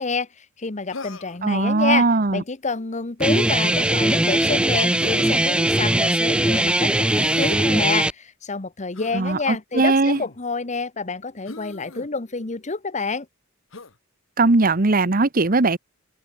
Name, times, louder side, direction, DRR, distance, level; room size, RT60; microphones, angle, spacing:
voice 1, 0.0-13.3, left 4 dB, 35° left, 1.1 m, -28 dB
Human voice, 0.9-1.5 3.2-3.5 5.0-5.4 7.0-7.6 9.0-9.2 10.1-10.4 11.5-12.1 13.7-14.0, left 3 dB, 70° left, 1.8 m, -37 dB
voice 2, 1.4-2.4 9.1-10.2 14.4-15.8, right 3 dB, 45° right, 1.1 m, -19 dB
Guitar, 3.2-8.1, right 1 dB, 5° right, 0.3 m, -20 dB
open air
head